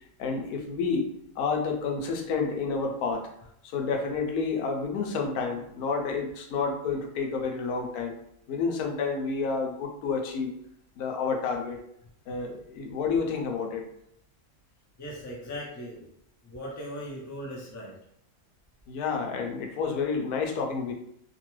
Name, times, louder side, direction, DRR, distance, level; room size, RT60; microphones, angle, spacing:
voice 1, 0.2-1.1 1.4-3.3 3.6-8.2 8.5-10.5 11.0-11.8 12.3-13.9 18.9-20.9, left 5 dB, 85° left, 2 dB, 1.1 m, -29 dB
voice 2, 15.0-16.0 16.4-17.9, equal, 25° left, -3 dB, 0.4 m, -38 dB
2.9 x 2.2 x 3.0 m, 0.72 s
omnidirectional pair, 1.5 m